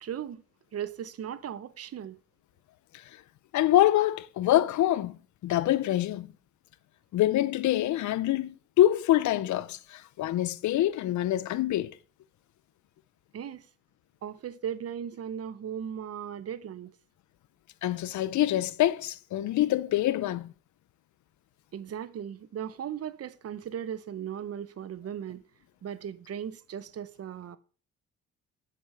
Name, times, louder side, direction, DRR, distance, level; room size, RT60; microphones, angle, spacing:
voice 1, 0.0-0.4 0.7-2.2 13.3-13.7 14.2-16.9 21.7-25.4 25.8-27.6, right 9 dB, 50° right, 0.9 m, -37 dB
voice 2, 3.5-6.3 7.1-11.9 17.8-20.5, left 13 dB, 70° left, 0.7 m, -25 dB
8.1 x 6.8 x 5.7 m
cardioid pair, 90°, 30 cm